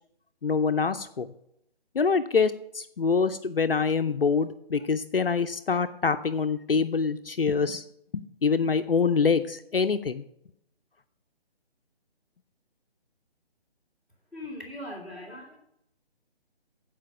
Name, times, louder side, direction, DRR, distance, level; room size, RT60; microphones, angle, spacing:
voice 1, 0.4-1.3 1.9-7.8 8.1-10.2, left 5 dB, 60° left, 10 dB, 0.6 m, -25 dB
voice 2, 14.3-15.6, left 1 dB, ahead, -8 dB, 2.6 m, -40 dB
15.0 x 5.1 x 6.0 m, 0.76 s
figure-of-eight pair, 145°, 31 cm